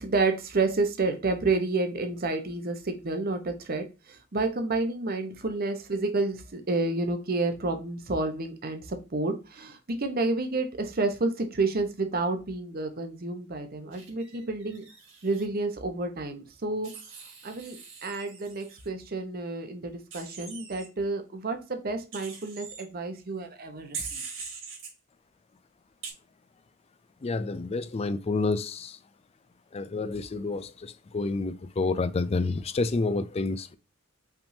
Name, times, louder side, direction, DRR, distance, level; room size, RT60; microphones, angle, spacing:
voice 1, 0.0-14.8 15.2-16.9 17.4-24.2, right 3 dB, 45° right, 0.9 m, -30 dB
Wild animals, 13.9-15.4 16.8-18.9 20.1-20.9 22.1-22.8 23.9-24.9 26.0-26.1, right 5 dB, 70° right, 1.9 m, -42 dB
voice 2, 27.2-29.0 29.7-33.8, left 3 dB, 30° left, 0.4 m, -29 dB
5.7 x 3.5 x 2.6 m
head